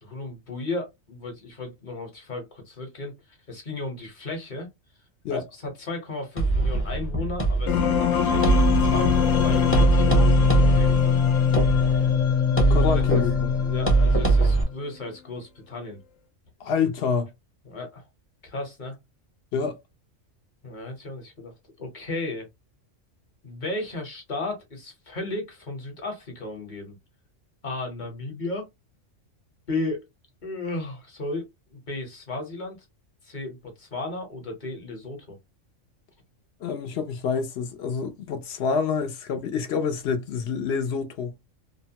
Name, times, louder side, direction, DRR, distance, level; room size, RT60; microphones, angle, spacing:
voice 1, 0.0-4.7 5.3-11.1 12.8-12.9 13.1-13.2 13.6-16.0 17.6-18.1 18.4-19.0 20.6-21.5 21.8-22.5 23.4-27.0 27.6-28.7 29.7-30.0 30.4-32.8 33.2-35.4, left 2 dB, 40° left, 1.0 m, -35 dB
sound 1, 6.4-14.6, right 3 dB, 15° left, 0.6 m, -23 dB
sound 2, 7.7-14.7, left 8 dB, 85° left, 1.0 m, -22 dB
voice 2, 12.7-13.5 16.6-17.3 19.5-19.8 36.6-41.3, left 5 dB, 65° left, 0.8 m, -27 dB
2.8 x 2.1 x 2.7 m
omnidirectional pair, 1.3 m